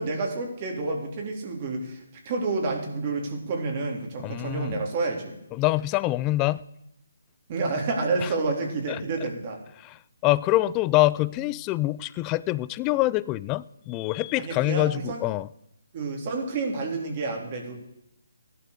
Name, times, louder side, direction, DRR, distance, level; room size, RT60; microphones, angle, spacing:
voice 1, 0.0-5.4 7.5-9.6 14.3-15.2 15.9-17.8, right 3 dB, 35° right, 1 dB, 3.8 m, -29 dB
voice 2, 4.2-4.8 5.5-6.6 8.2-8.3 8.9-9.0 9.8-15.5, left 17 dB, 20° left, 18 dB, 0.4 m, -25 dB
16.0 x 11.5 x 6.8 m, 0.81 s
hypercardioid pair, 150°, 0 cm